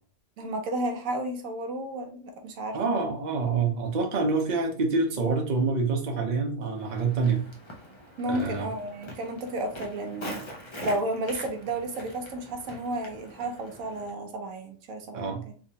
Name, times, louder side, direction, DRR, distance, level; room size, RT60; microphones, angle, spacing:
voice 1, 0.4-2.8 8.2-10.4 10.8-15.6, right 1 dB, 80° right, 4 dB, 1.1 m, -32 dB
voice 2, 2.7-7.4 8.3-8.7 15.1-15.4, right 4 dB, 40° right, 2 dB, 0.7 m, -26 dB
Walk footsteps, 6.7-14.1, equal, 30° left, 0.6 m, -43 dB
3.5 x 3.0 x 2.7 m, 0.43 s
omnidirectional pair, 1.4 m